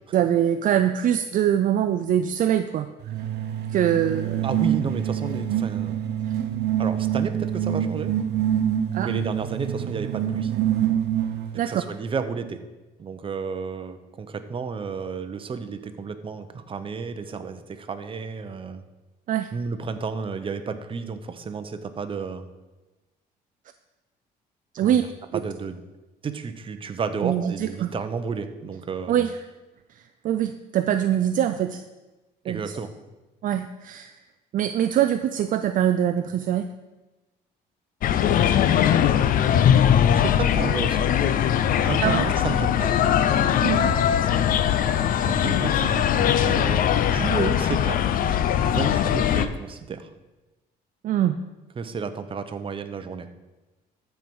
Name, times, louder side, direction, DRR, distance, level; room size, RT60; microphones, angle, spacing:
voice 1, 0.1-2.9 3.7-4.5 8.9-9.1 11.5-11.8 19.3-19.5 24.7-25.0 25.3-25.4 27.2-27.9 29.1-29.4 30.2-31.8 32.5-32.7 33.4-34.1 34.5-36.7 42.0-42.3 43.6-43.9 51.0-51.4, right 10 dB, 50° right, 9 dB, 0.4 m, -23 dB
sound 1, 3.0-11.6, right 10 dB, 75° right, 0.8 m, -26 dB
voice 2, 4.4-6.0 6.8-8.1 9.0-10.5 11.5-12.6 13.0-18.8 19.5-22.5 24.8-25.1 25.3-25.8 26.2-29.2 32.4-32.9 40.1-41.1 41.8-42.9 45.3-48.1 48.7-50.1 51.8-53.3, right 5 dB, 30° right, 9 dB, 0.8 m, -32 dB
sound 2, 38.0-49.5, left 9 dB, 55° left, 0.6 m, -21 dB
13.5 x 4.7 x 5.4 m, 1.1 s
cardioid pair, 110°, 17 cm